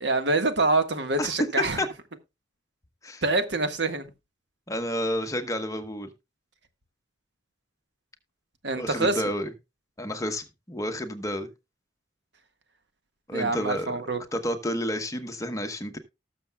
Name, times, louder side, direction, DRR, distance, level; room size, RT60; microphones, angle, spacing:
voice 1, 0.0-1.8 3.2-4.0 8.6-9.2 13.3-14.2, right 3 dB, 65° right, 1.5 m, -25 dB
voice 2, 4.7-6.1 8.8-9.5 10.0-11.5 13.3-13.9 14.3-16.0, equal, 15° left, 1.1 m, -30 dB
19.0 x 6.7 x 2.3 m
head